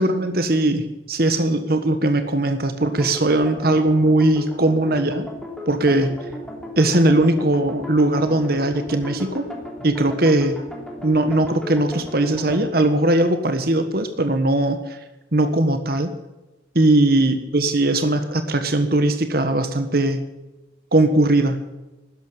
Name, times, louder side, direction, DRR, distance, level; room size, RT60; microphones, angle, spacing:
voice 1, 0.0-5.3 5.7-6.2 6.8-9.4 9.8-10.6 11.0-15.0 15.3-16.1 16.7-20.3 20.9-21.6, right 1 dB, 55° right, 8 dB, 1.5 m, -19 dB
sound 1, 2.8-12.7, equal, 5° left, 2.9 m, -35 dB
13.0 x 10.5 x 9.1 m, 1.1 s
head